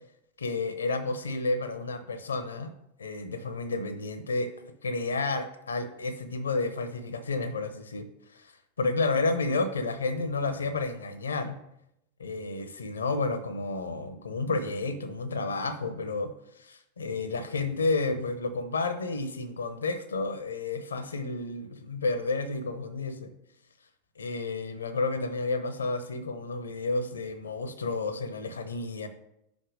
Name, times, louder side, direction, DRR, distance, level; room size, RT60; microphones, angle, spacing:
voice 1, 0.4-2.7 3.0-4.5 4.8-8.1 8.3-8.5 8.8-11.6 12.2-16.3 16.6-23.3 24.2-29.1, left 3 dB, 70° left, 10 dB, 0.8 m, -31 dB
5.6 x 5.4 x 6.4 m, 0.80 s
figure-of-eight pair, 90°, 0 cm